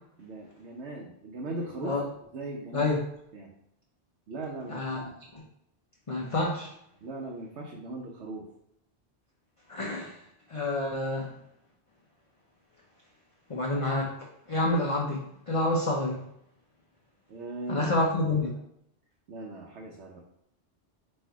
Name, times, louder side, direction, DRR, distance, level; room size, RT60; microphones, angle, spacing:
voice 1, 0.2-2.0 2.3-2.9 3.3-3.5 4.3-5.1 7.0-8.4 17.3-17.9 19.3-20.2, right 2 dB, 80° right, -2 dB, 1.0 m, -39 dB
voice 2, 6.1-6.7 9.7-10.2 10.5-11.3 13.5-14.2 14.5-16.2 17.7-18.5, left 2 dB, 35° left, -2 dB, 0.6 m, -28 dB
4.3 x 2.6 x 4.6 m, 0.76 s
omnidirectional pair, 1.1 m